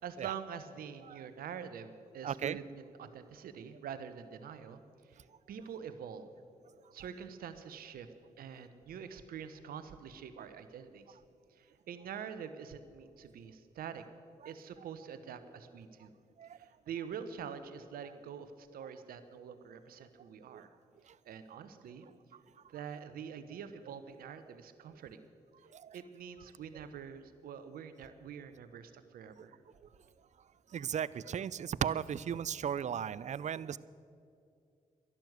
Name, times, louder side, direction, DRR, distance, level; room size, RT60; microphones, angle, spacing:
voice 1, 0.0-4.8 5.1-5.2 5.5-6.3 6.9-8.1 8.4-11.2 11.5-14.0 14.4-16.1 16.6-20.7 21.3-22.1 22.7-25.2 25.9-29.6, right 7 dB, 75° right, 11 dB, 0.9 m, -45 dB
voice 2, 2.2-2.6 16.4-16.5 20.5-20.6 25.7-26.0 30.7-33.8, right 8 dB, 50° right, 20 dB, 0.5 m, -36 dB
11.5 x 11.5 x 7.9 m, 2.4 s
hypercardioid pair, 40°, 15 cm